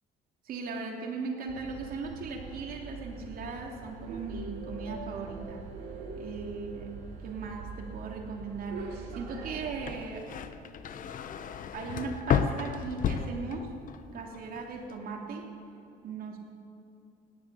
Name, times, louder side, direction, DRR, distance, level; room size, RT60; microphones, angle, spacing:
voice 1, 0.4-5.6 6.1-6.9 7.2-10.3 11.7-13.7 14.1-15.5 16.0-16.4, right 4 dB, 60° right, 1 dB, 2.8 m, -38 dB
sound 1, 1.5-10.0, right 4 dB, 85° right, 3.4 m, -43 dB
sound 2, 9.7-14.0 14.3-14.9, left 7 dB, 55° left, 0.9 m, -32 dB
17.0 x 11.0 x 6.9 m, 2.8 s
cardioid pair, 110°, 17 cm